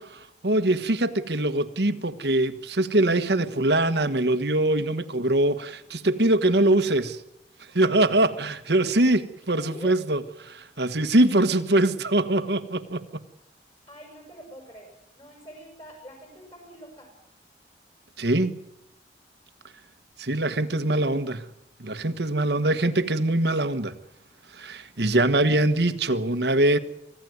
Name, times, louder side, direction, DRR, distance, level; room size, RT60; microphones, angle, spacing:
voice 1, 0.0-7.2 7.7-13.0 18.2-18.5 20.2-21.5 21.8-23.9 24.5-26.8, right 1 dB, 75° right, 11 dB, 1.5 m, -23 dB
voice 2, 9.5-9.9 13.9-17.1, equal, 30° left, 1 dB, 6.5 m, -45 dB
25.0 x 16.0 x 9.5 m, 0.84 s
head